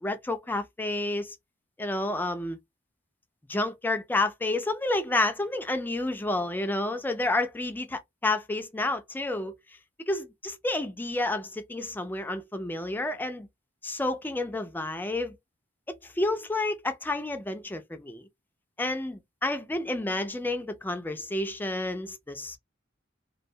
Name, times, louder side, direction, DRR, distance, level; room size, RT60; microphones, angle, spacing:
voice 1, 0.0-1.4 1.8-2.6 3.5-9.5 10.1-13.5 13.8-15.4 15.9-18.2 18.8-22.6, left 2 dB, 10° left, 0.3 m, -30 dB
2.2 x 2.1 x 2.6 m
head